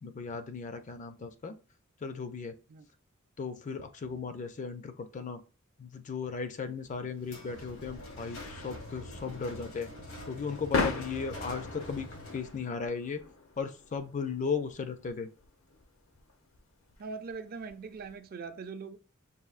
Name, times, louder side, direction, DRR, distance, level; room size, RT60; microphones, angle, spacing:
voice 1, 0.0-1.6 2.0-2.5 3.4-5.4 5.8-9.9 10.3-13.2 13.6-15.3, left 5 dB, 35° left, 0.4 m, -36 dB
sound 1, 6.8-18.1, left 3 dB, 75° left, 0.7 m, -40 dB
sound 2, 7.2-12.7, left 1 dB, 90° left, 1.6 m, -45 dB
voice 2, 17.0-19.0, right 5 dB, 45° right, 0.4 m, -41 dB
5.5 x 2.6 x 2.4 m
head